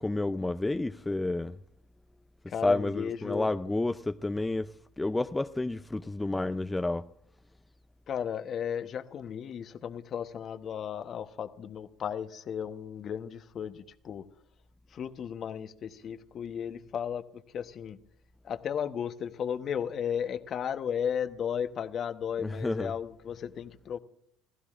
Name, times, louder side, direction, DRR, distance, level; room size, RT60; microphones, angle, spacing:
voice 1, 0.0-1.5 2.6-7.1 22.4-22.9, left 2 dB, 15° left, 0.5 m, -30 dB
voice 2, 2.5-3.5 8.1-14.3 14.9-18.0 18.4-24.0, left 8 dB, 45° left, 1.0 m, -35 dB
27.0 x 15.5 x 2.5 m
hypercardioid pair, 70°, 0 cm